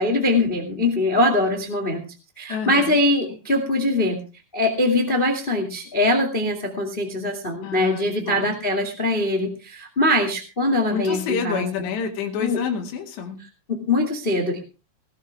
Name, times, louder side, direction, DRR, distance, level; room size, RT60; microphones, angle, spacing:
voice 1, 0.0-2.0 2.4-4.2 4.5-11.9 12.4-12.6 13.7-14.6, left 1 dB, 25° left, 5 dB, 1.2 m, -22 dB
voice 2, 2.5-3.0 7.6-8.5 10.9-13.4, left 6 dB, 75° left, 2 dB, 4.4 m, -28 dB
19.0 x 12.5 x 3.5 m, 0.32 s
omnidirectional pair, 5.1 m